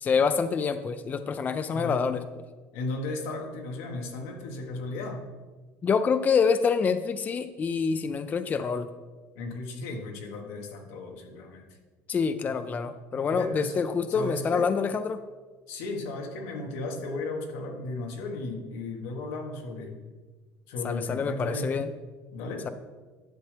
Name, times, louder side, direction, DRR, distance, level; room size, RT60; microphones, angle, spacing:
voice 1, 0.0-2.2 5.8-8.9 12.1-15.2 20.8-21.9, left 5 dB, 25° left, 11 dB, 0.3 m, -26 dB
voice 2, 1.7-2.1 2.7-5.2 9.3-11.7 13.3-13.8 14.1-14.7 15.7-20.0 20.7-21.9 22.3-22.7, left 2 dB, 85° left, 2 dB, 1.4 m, -35 dB
11.0 x 6.3 x 3.4 m, 1.4 s
cardioid pair, 130°, 7 cm